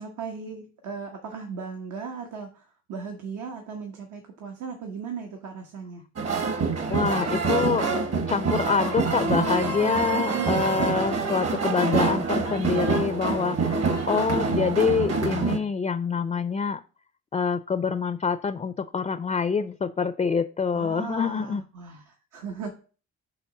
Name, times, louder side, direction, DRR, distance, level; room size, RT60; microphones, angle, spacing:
voice 1, 0.0-6.0 10.1-10.6 14.2-14.6 20.7-22.7, right 6 dB, 80° right, 3 dB, 1.3 m, -37 dB
sound 1, 6.2-15.6, right 4 dB, 55° right, 1.4 m, -26 dB
voice 2, 6.9-7.9 8.3-16.8 17.3-21.6, left 5 dB, 20° left, 12 dB, 0.4 m, -26 dB
6.9 x 3.2 x 5.9 m, 0.38 s
cardioid pair, 90°, 30 cm